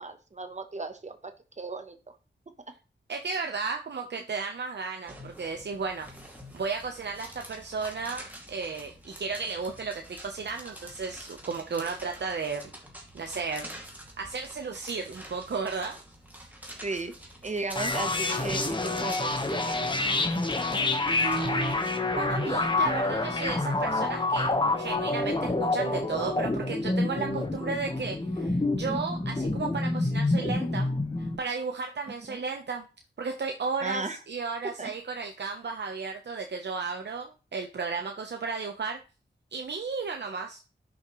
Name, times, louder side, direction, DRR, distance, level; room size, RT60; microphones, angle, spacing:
voice 1, 0.0-1.3 1.6-2.2 16.8-17.1 17.4-20.2 32.3-32.4 33.8-34.2 34.8-34.9, right 3 dB, 40° right, 8 dB, 1.1 m, -36 dB
voice 2, 3.1-6.1 6.5-12.7 13.1-13.7 14.2-15.9 21.2-21.8 22.2-24.5 24.8-30.9 31.2-32.9 33.2-39.0 39.5-40.6, right 4 dB, 65° right, 4 dB, 0.9 m, -34 dB
sound 1, 5.1-21.9, equal, 10° right, 2.4 m, -47 dB
sound 2, 17.8-31.4, left 2 dB, 25° left, 1.3 m, -28 dB
11.0 x 6.4 x 3.1 m, 0.33 s
wide cardioid pair, 100°, 19 cm